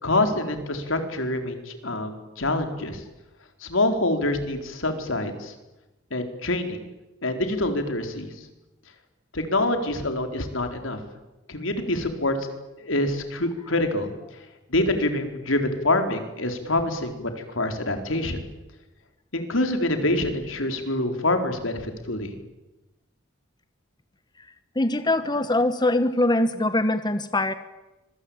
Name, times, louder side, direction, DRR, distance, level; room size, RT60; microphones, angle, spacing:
voice 1, 0.0-3.0 3.6-5.5 6.1-6.8 7.2-8.3 9.3-11.0 11.5-12.4 12.8-14.1 14.7-18.4 19.3-22.3, left 2 dB, 80° left, 6 dB, 4.2 m, -26 dB
voice 2, 24.7-27.5, left 2 dB, 20° left, 11 dB, 1.2 m, -22 dB
26.0 x 23.5 x 9.0 m, 1.0 s
head